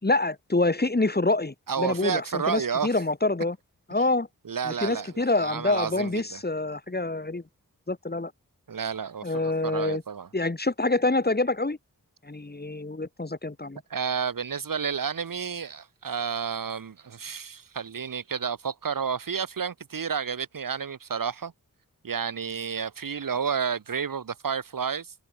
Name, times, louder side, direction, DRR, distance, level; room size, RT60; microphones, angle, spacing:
voice 1, 0.0-3.6 3.9-4.3 4.6-7.4 7.9-8.3 9.2-10.0 10.3-11.8 12.2-13.8, left 2 dB, 25° left, 4.5 m, -26 dB
voice 2, 1.7-2.9 4.4-6.4 8.7-10.3 13.9-21.5 22.0-25.1, right 6 dB, 65° right, 1.3 m, -31 dB
wide cardioid pair, 110°, 35 cm